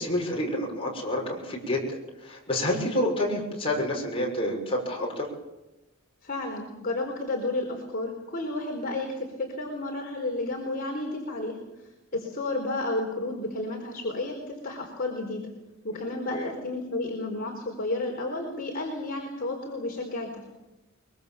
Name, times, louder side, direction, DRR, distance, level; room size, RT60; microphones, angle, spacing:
voice 1, 0.0-5.3 16.3-16.5, left 1 dB, 25° left, -1 dB, 6.4 m, -29 dB
voice 2, 6.2-15.5 15.8-20.5, left 2 dB, 45° left, -1 dB, 4.4 m, -32 dB
24.0 x 23.0 x 7.3 m, 1.0 s
head